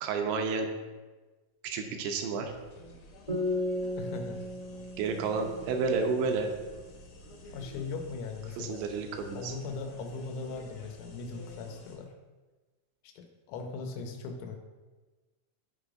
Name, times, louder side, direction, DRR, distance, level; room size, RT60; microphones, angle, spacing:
voice 1, 0.0-0.7 1.6-2.5 5.0-6.5 8.6-9.5, right 4 dB, 80° right, 4 dB, 2.5 m, -30 dB
sound 1, 2.4-12.0, left 2 dB, 65° left, 2.0 m, -50 dB
sound 2, 3.3-6.7, left 1 dB, 20° left, 1.1 m, -36 dB
voice 2, 3.9-4.5 7.5-8.8 9.3-12.1 13.0-14.6, left 4 dB, 90° left, 4 dB, 3.3 m, -39 dB
13.0 x 5.0 x 2.5 m, 1.3 s
omnidirectional pair, 5.3 m